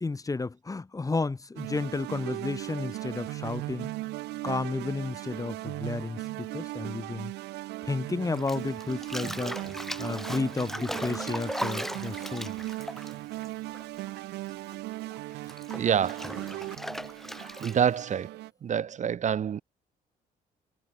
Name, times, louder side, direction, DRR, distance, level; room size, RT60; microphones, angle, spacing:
voice 1, 0.0-3.9 4.4-7.3 7.8-9.6 10.0-12.5, left 3 dB, 20° left, 0.9 m, -32 dB
sound 1, 1.6-18.5, right 18 dB, 80° right, 1.8 m, -38 dB
Bathtub (filling or washing), 8.3-14.2 14.5-18.0, equal, ahead, 1.6 m, -38 dB
voice 2, 15.8-16.3 17.6-18.3 18.6-19.6, right 8 dB, 45° right, 0.7 m, -26 dB
supercardioid pair, 65°, 17 cm